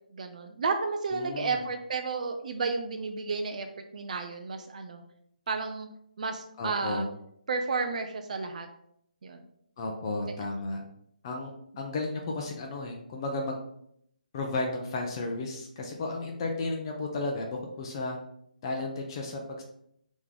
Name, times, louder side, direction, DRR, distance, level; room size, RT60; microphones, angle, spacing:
voice 1, 0.1-3.7 3.9-5.0 5.5-5.9 6.2-7.1 7.5-8.7 9.2-9.4, right 4 dB, 50° right, 5 dB, 0.4 m, -32 dB
voice 2, 1.1-1.6 6.6-7.1 9.8-10.8 11.2-13.6 14.3-17.5 17.8-18.2 18.6-19.6, left 2 dB, 30° left, 1 dB, 0.6 m, -33 dB
3.4 x 3.0 x 3.8 m, 0.72 s
figure-of-eight pair, 145°, 5 cm